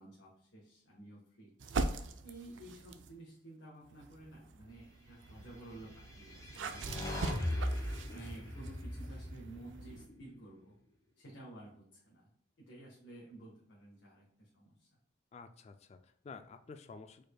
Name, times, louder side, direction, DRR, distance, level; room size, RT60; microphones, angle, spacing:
voice 1, 0.0-1.5 2.2-7.4 8.1-10.7 11.2-12.3 12.6-14.9, right 2 dB, 90° left, -5 dB, 1.4 m, -53 dB
sound 1, 1.6-3.2 3.9-10.1, right 3 dB, 90° right, 0.5 m, -42 dB
sound 2, 5.9-10.2, left 1 dB, 20° left, 1.2 m, -39 dB
voice 2, 15.3-17.2, left 4 dB, 35° left, 8 dB, 0.3 m, -51 dB
5.0 x 4.4 x 2.3 m, 0.68 s
head